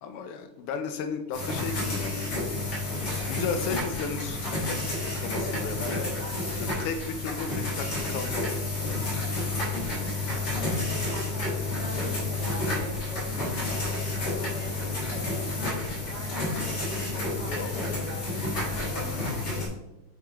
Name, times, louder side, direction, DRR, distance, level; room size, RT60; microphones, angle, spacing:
voice 1, 0.0-2.4 3.3-4.4 4.7-4.8 5.2-6.0 6.8-8.5 17.5-17.7, left 5 dB, 85° left, 7 dB, 1.6 m, -34 dB
sound 1, 1.3-19.7, left 2 dB, 50° left, 2.4 m, -30 dB
voice 2, 5.3-6.7 9.5-19.7, equal, 30° right, -5 dB, 2.3 m, -41 dB
7.4 x 4.7 x 3.1 m, 0.92 s
omnidirectional pair, 2.4 m